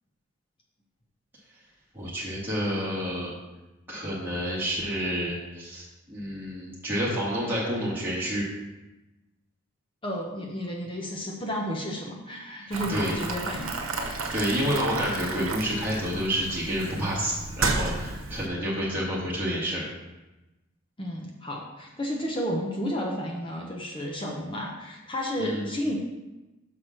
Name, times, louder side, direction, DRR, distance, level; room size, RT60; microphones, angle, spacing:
voice 1, 1.9-3.3 3.9-8.5 12.6-13.1 14.3-19.8 25.4-25.7, equal, 10° right, -8 dB, 2.1 m, -29 dB
voice 2, 10.0-14.3 21.0-26.0, equal, 25° left, -1 dB, 0.9 m, -32 dB
Boiling, 12.7-18.5, right 3 dB, 90° right, 1.0 m, -32 dB
5.9 x 4.8 x 6.2 m, 1.0 s
head